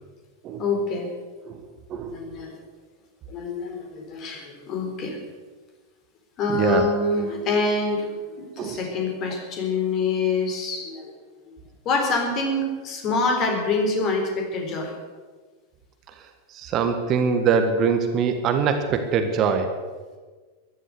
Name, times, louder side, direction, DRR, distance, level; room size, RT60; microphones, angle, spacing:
voice 1, 0.6-1.1 2.1-2.5 3.3-5.2 6.4-11.1 11.8-14.9, left 3 dB, 35° left, 3 dB, 4.0 m, -26 dB
voice 2, 6.5-6.8 8.6-8.8 16.5-19.7, right 6 dB, 35° right, 7 dB, 1.6 m, -22 dB
15.0 x 12.0 x 8.1 m, 1.4 s
figure-of-eight pair, 90°, 0 cm